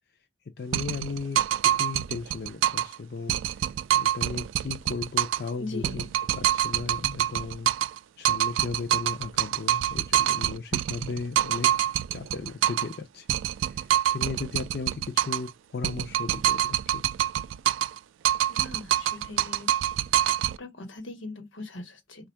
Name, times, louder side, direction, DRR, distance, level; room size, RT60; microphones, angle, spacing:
voice 1, 0.6-1.4 1.6-3.7 3.9-6.0 6.3-7.7 8.2-11.7 12.1-13.4 13.7-17.0, left 4 dB, 55° left, 0.5 m, -36 dB
sound 1, 0.7-3.0 3.3-5.5 5.8-13.0 13.3-15.5 15.8-18.0 18.2-20.6, right 11 dB, 90° right, 0.3 m, -26 dB
voice 2, 5.6-6.1 18.5-19.7 20.6-22.3, left 2 dB, 90° left, 1.2 m, -40 dB
4.2 x 2.4 x 4.4 m
head